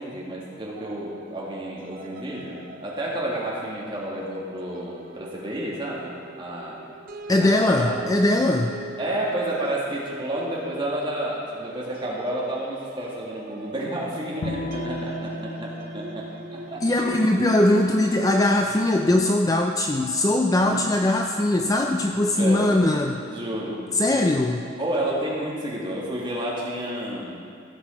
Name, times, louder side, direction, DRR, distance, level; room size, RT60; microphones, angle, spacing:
voice 1, 0.0-6.8 7.3-8.0 9.0-17.3 17.6-17.7 20.6-20.8 22.3-22.7 23.2-23.8 24.1-24.2 24.8-27.4, right 1 dB, 25° right, -5 dB, 2.0 m, -31 dB
Scary atmosphere, 0.8-18.3, right 2 dB, 45° right, 0.7 m, -42 dB
voice 2, 7.3-8.7 16.8-23.2 23.9-24.6, left 1 dB, 20° left, 3 dB, 0.4 m, -21 dB
Bowed string instrument, 14.4-17.7, left 1 dB, 75° left, 0.6 m, -35 dB
15.5 x 6.2 x 4.4 m, 2.4 s
head